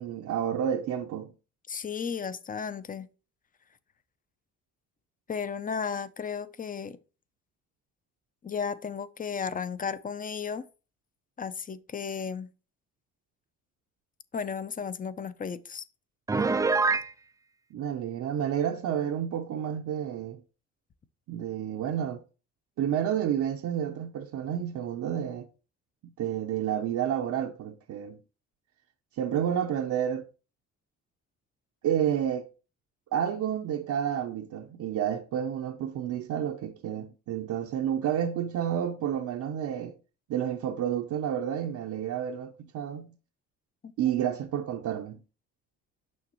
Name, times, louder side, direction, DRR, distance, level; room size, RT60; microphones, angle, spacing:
voice 1, 0.0-1.3 17.7-20.4 21.3-22.2 22.8-25.5 26.0-28.2 29.2-30.2 31.8-32.5 33.1-39.9 40.3-43.1 44.0-45.2, right 9 dB, 75° right, 0.7 m, -30 dB
voice 2, 1.7-3.1 5.3-7.0 8.4-10.7 11.4-12.5 14.3-15.8 43.8-44.1, left 6 dB, 30° left, 0.6 m, -34 dB
Piano, 16.3-17.1, right 4 dB, 10° right, 0.3 m, -24 dB
6.4 x 5.9 x 3.0 m
cardioid pair, 90°, 30 cm